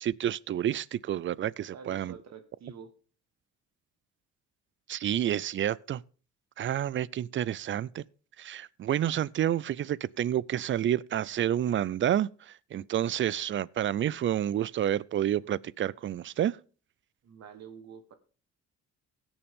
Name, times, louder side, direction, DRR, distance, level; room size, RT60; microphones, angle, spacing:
voice 1, 0.0-2.1 4.9-6.0 6.6-8.0 8.4-16.6, right 11 dB, 40° right, 0.4 m, -29 dB
voice 2, 1.7-2.9 17.2-18.1, right 6 dB, 60° right, 1.4 m, -47 dB
17.0 x 7.1 x 3.6 m
cardioid pair, 90°, 30 cm